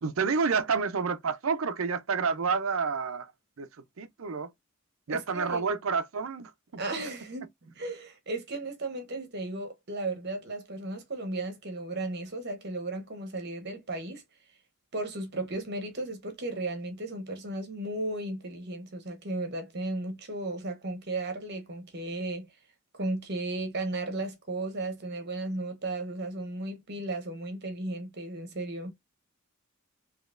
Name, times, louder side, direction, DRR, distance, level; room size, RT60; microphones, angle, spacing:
voice 1, 0.0-3.3 3.6-3.7 4.0-4.5 5.1-6.8, right 5 dB, 85° right, 0.6 m, -29 dB
voice 2, 5.1-5.7 6.8-7.5 7.7-14.2 14.9-22.5 22.9-28.9, right 2 dB, 55° right, 1.1 m, -35 dB
3.9 x 3.0 x 2.5 m
head